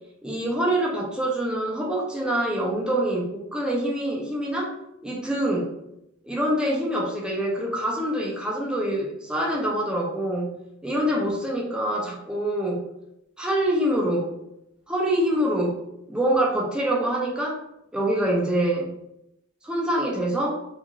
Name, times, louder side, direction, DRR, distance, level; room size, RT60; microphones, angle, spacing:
voice 1, 0.2-4.7 5.0-5.7 6.2-10.5 10.8-12.8 13.4-14.3 14.9-15.8 16.1-17.6 17.9-18.9 19.6-20.6, right 1 dB, 5° right, -3 dB, 0.5 m, -25 dB
2.5 x 2.4 x 2.9 m, 0.80 s
head